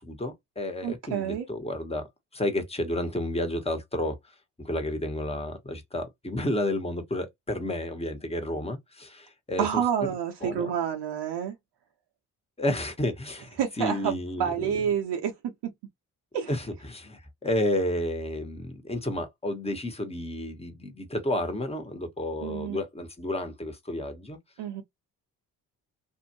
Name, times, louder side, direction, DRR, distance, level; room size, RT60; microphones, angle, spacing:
voice 1, 0.1-2.0 2.4-4.1 4.7-8.8 9.5-9.8 10.4-10.7 12.6-13.4 13.8-14.7 16.5-17.0 17.4-24.4, left 1 dB, 15° left, 1.3 m, -31 dB
voice 2, 0.8-1.5 9.6-11.5 13.6-15.3 15.6-15.7 16.3-16.5 22.4-22.8 24.6-24.8, right 8 dB, 65° right, 0.9 m, -28 dB
2.7 x 2.5 x 2.9 m
hypercardioid pair, 45°, 44 cm